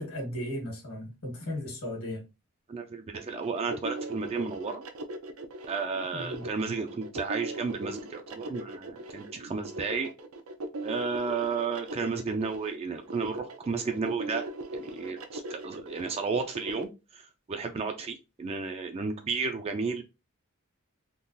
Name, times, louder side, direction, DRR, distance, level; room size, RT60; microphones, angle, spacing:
voice 1, 0.0-2.2 6.1-6.5, left 1 dB, 75° left, 1.6 m, -36 dB
voice 2, 2.7-4.8 5.7-10.1 10.8-17.2 17.5-20.0, right 4 dB, 30° right, 0.3 m, -33 dB
sound 1, 3.1-16.8, right 1 dB, 80° right, 0.5 m, -39 dB
3.7 x 2.3 x 2.6 m
head